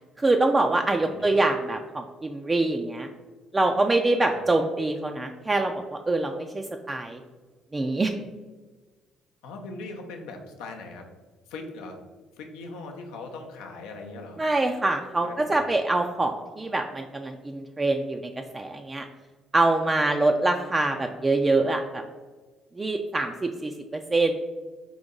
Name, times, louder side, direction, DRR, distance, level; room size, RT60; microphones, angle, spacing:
voice 1, 0.2-3.1 3.5-7.2 7.7-8.1 14.4-19.1 19.5-22.0 22.8-24.3, right 2 dB, 25° right, 3 dB, 0.3 m, -25 dB
voice 2, 9.4-11.1 11.5-12.0 12.4-14.4 15.2-15.6, left 3 dB, 75° left, 3 dB, 0.6 m, -40 dB
3.8 x 2.8 x 3.7 m, 1.3 s
hypercardioid pair, 55°, 0 cm